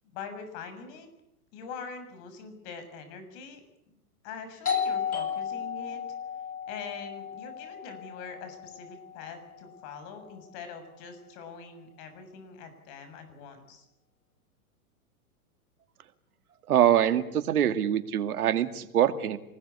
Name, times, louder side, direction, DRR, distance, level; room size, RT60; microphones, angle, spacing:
voice 1, 0.1-1.1 1.5-3.6 3.9-4.0 4.2-6.0 6.7-13.8, left 5 dB, 50° left, 9 dB, 7.2 m, -43 dB
Doorbell, 4.7-10.0, left 7 dB, 80° left, 7.5 m, -34 dB
voice 2, 16.7-19.4, right 10 dB, 75° right, 10 dB, 2.3 m, -24 dB
27.0 x 20.5 x 8.4 m, 0.81 s
hypercardioid pair, 125°, 44 cm